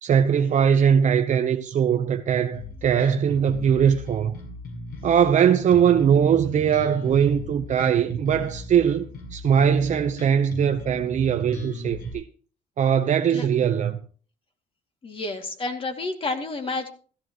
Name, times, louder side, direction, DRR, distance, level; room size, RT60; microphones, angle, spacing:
voice 1, 0.0-4.4 5.0-12.2 12.8-14.0, right 8 dB, 45° right, 0.9 m, -21 dB
Bass guitar, 2.5-12.1, left 3 dB, 60° left, 7.4 m, -37 dB
voice 2, 15.0-16.9, left 3 dB, 30° left, 2.4 m, -30 dB
15.5 x 14.0 x 3.1 m
cardioid pair, 110°, 17 cm